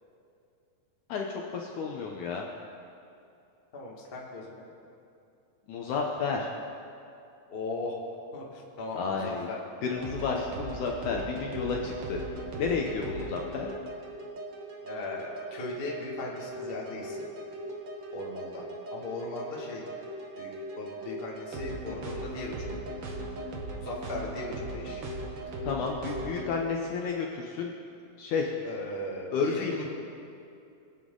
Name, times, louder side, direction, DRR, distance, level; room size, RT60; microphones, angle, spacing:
voice 1, 1.1-2.5 5.7-6.5 8.9-9.5 9.8-12.2 12.6-13.7 25.6-27.7 28.2-28.5 29.3-29.9, left 5 dB, 70° left, 0 dB, 2.0 m, -31 dB
voice 2, 3.7-4.6 7.5-8.0 8.3-9.6 14.8-17.2 18.1-19.8 20.4-20.5 20.8-22.9 23.7-25.1 28.6-29.9, left 2 dB, 25° left, -3 dB, 1.2 m, -38 dB
sound 1, 9.9-26.5, right 1 dB, 55° right, 1.7 m, -38 dB
23.5 x 9.2 x 3.9 m, 2.6 s
omnidirectional pair, 4.2 m